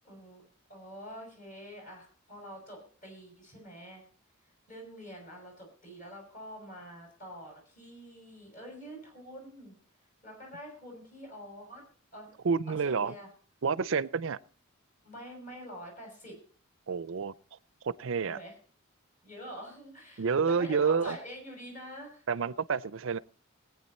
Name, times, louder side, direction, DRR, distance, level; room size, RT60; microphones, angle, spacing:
voice 1, 0.0-0.4 0.7-4.0 4.7-9.7 10.2-11.8 12.1-12.3 12.7-13.3 15.0-16.3 18.2-18.5 19.2-22.3, equal, 35° left, 1 dB, 6.5 m, -46 dB
voice 2, 12.4-13.1 13.6-14.4 16.9-17.3 17.8-18.4 20.2-21.2 22.3-23.2, right 5 dB, 65° right, 19 dB, 0.5 m, -29 dB
19.5 x 9.2 x 4.2 m, 0.42 s
head